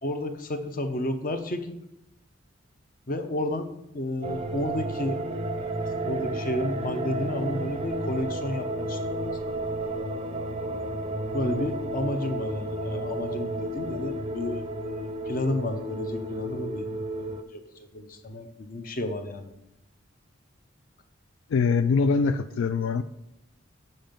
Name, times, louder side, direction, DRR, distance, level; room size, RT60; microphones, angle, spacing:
voice 1, 0.0-1.7 3.1-3.7 3.9-5.2 5.6-9.2 11.3-15.0 15.3-16.9 17.5-17.6 17.9-19.5, left 1 dB, 45° left, 8 dB, 0.8 m, -31 dB
sound 1, 4.2-17.4, right 1 dB, 30° right, 0.5 m, -32 dB
voice 2, 21.5-23.0, left 5 dB, 75° left, 11 dB, 0.3 m, -23 dB
7.5 x 5.4 x 5.2 m, 0.85 s
head